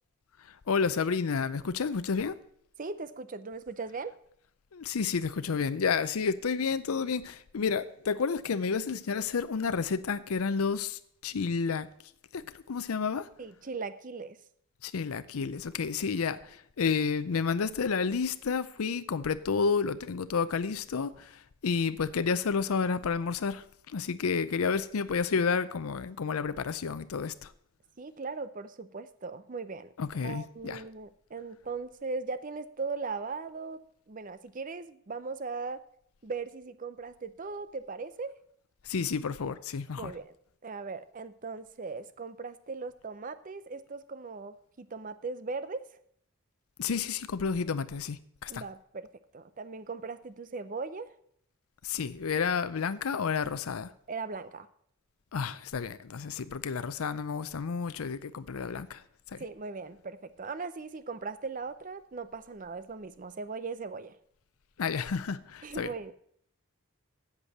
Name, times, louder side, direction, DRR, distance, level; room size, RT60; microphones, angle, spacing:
voice 1, 0.4-2.4 4.7-11.9 12.3-13.3 14.8-27.5 30.0-30.8 38.8-40.1 46.8-48.6 51.8-53.9 55.3-59.4 64.8-65.9, left 5 dB, 80° left, 0.5 m, -31 dB
voice 2, 2.8-4.2 13.4-14.4 28.0-29.9 30.2-35.8 36.2-38.4 40.0-40.3 40.6-45.9 48.5-49.1 49.3-51.1 54.1-54.7 59.4-64.2 65.6-66.1, right 4 dB, 40° right, 0.6 m, -39 dB
8.2 x 8.2 x 7.1 m
head